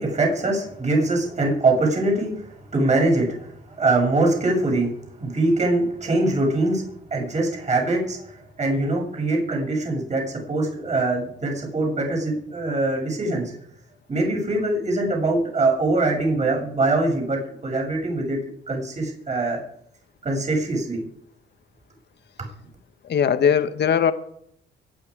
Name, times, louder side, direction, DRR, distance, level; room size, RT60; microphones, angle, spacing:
voice 1, 0.0-3.5 3.8-4.9 5.2-6.8 7.1-8.3 8.6-13.5 14.1-18.4 18.7-19.6 20.2-21.0, right 2 dB, 35° right, 0 dB, 7.2 m, -23 dB
voice 2, 23.1-24.1, left 7 dB, 60° left, 10 dB, 1.4 m, -19 dB
24.0 x 9.9 x 5.0 m, 0.71 s
cardioid pair, 90°, 20 cm